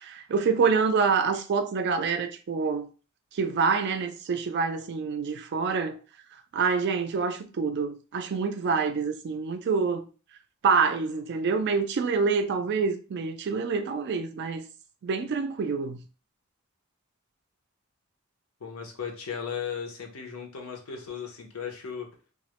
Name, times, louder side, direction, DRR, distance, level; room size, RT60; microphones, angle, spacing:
voice 1, 0.0-2.9 3.3-6.0 6.5-10.1 10.6-14.6 15.0-16.0, right 5 dB, 55° right, 0.3 m, -26 dB
voice 2, 18.6-22.3, left 7 dB, 90° left, 0.7 m, -36 dB
2.3 x 2.0 x 2.9 m
head